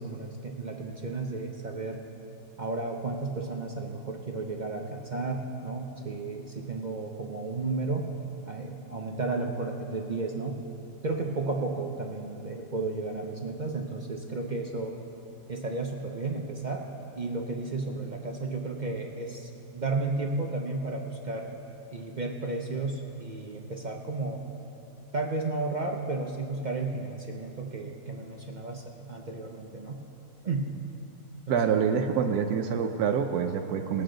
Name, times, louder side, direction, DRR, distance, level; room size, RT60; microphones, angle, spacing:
voice 1, 0.0-2.0 2.6-8.1 8.5-10.6 11.0-15.0 15.5-16.8 17.2-21.5 21.9-24.4 25.1-30.0 30.4-30.7 31.5-31.6, right 3 dB, 50° right, 1 dB, 0.5 m, -33 dB
voice 2, 31.5-34.0, right 7 dB, 80° right, 5 dB, 1.1 m, -26 dB
19.5 x 8.7 x 3.8 m, 2.8 s
omnidirectional pair, 1.6 m